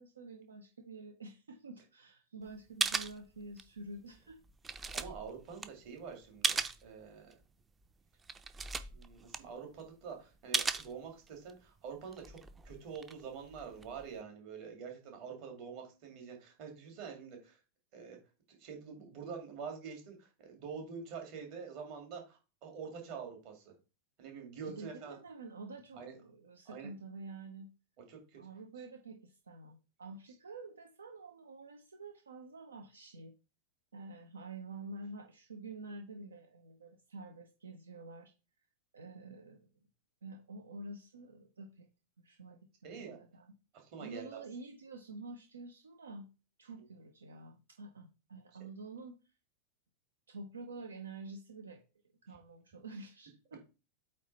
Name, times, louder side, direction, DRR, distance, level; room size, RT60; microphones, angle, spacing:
voice 1, 0.0-4.4 24.7-27.7 28.4-33.3 33.9-38.3 38.9-39.7 40.2-41.9 42.2-43.5 44.0-46.3 46.6-49.2 50.3-51.8 52.2-53.6, right 3 dB, 70° right, 5 dB, 0.7 m, -48 dB
sound 1, 2.5-2.6 2.8-3.8 4.2-6.9 7.3-7.4 7.9-8.0 8.2-9.9 10.5-11.5 12.0-14.2, right 4 dB, 15° right, 0.5 m, -37 dB
voice 2, 4.9-7.4 8.9-17.6 17.9-18.2 18.5-23.7 24.2-25.2 26.0-26.1 26.7-26.9 28.1-28.4 42.8-43.2 43.7-44.4 46.8-46.9, right 6 dB, 45° right, 3 dB, 2.2 m, -46 dB
8.4 x 3.2 x 4.1 m, 0.32 s
figure-of-eight pair, 90°, 0 cm